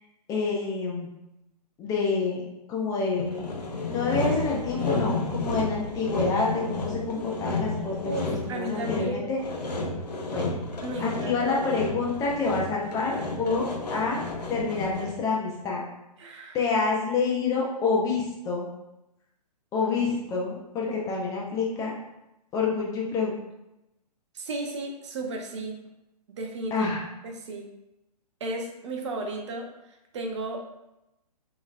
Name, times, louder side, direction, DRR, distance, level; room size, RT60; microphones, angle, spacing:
voice 1, 0.3-1.1 1.8-2.4 2.7-3.5 3.9-9.4 10.3-10.6 11.0-14.2 14.5-15.8 16.5-18.7 19.7-21.9 22.5-23.3 26.7-27.0, left 4 dB, 15° left, -3 dB, 0.7 m, -27 dB
Sawing, 3.2-15.2, left 3 dB, 75° left, 0.9 m, -32 dB
voice 2, 8.0-9.3 10.8-11.5 16.2-16.6 24.3-25.8 26.4-26.9 27.2-27.7 28.4-29.7 30.1-30.6, right 2 dB, 45° right, 2 dB, 0.8 m, -34 dB
6.3 x 3.1 x 2.5 m, 0.91 s
figure-of-eight pair, 125°, 21 cm